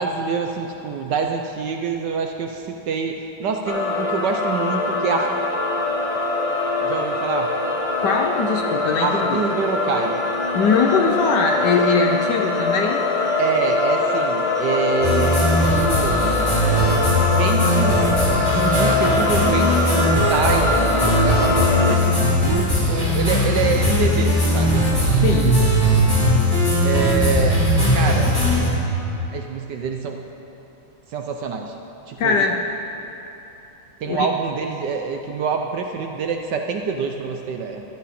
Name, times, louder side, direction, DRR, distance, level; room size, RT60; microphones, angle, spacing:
voice 1, 0.0-5.3 6.8-7.5 9.0-10.2 13.4-16.3 17.4-18.0 18.5-24.9 26.8-27.6 27.9-28.3 29.2-30.2 31.1-31.7 32.1-32.4 34.0-37.8, right 5 dB, 65° right, 4 dB, 1.1 m, -26 dB
sound 1, 3.7-22.0, left 2 dB, 40° left, 0.4 m, -22 dB
voice 2, 8.0-9.4 10.5-13.0 25.2-25.6 32.2-32.6 34.0-34.3, left 5 dB, 65° left, 3 dB, 1.1 m, -21 dB
sound 2, 15.0-28.7, left 1 dB, 10° left, 2.5 m, -20 dB
sound 3, 22.2-29.0, right 2 dB, 45° right, 1.6 m, -24 dB
14.5 x 12.0 x 4.2 m, 3.0 s
omnidirectional pair, 2.3 m